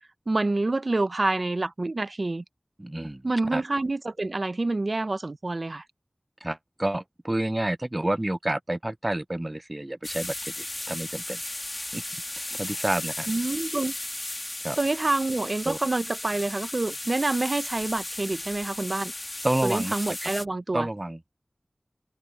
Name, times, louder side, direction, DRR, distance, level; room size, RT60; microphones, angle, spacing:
voice 1, 0.3-2.4 3.2-5.8 13.3-13.9 14.8-19.1 19.6-20.9, right 2 dB, 70° right, 0.7 m, -27 dB
voice 2, 2.8-3.2 3.5-3.6 6.4-11.4 11.9-12.0 12.6-13.3 14.6-14.8 15.7-15.8 19.4-19.9 20.7-21.3, right 1 dB, 35° right, 0.4 m, -29 dB
sound 1, 10.0-20.4, left 1 dB, 45° left, 2.3 m, -35 dB
wide cardioid pair, 40°, 0 cm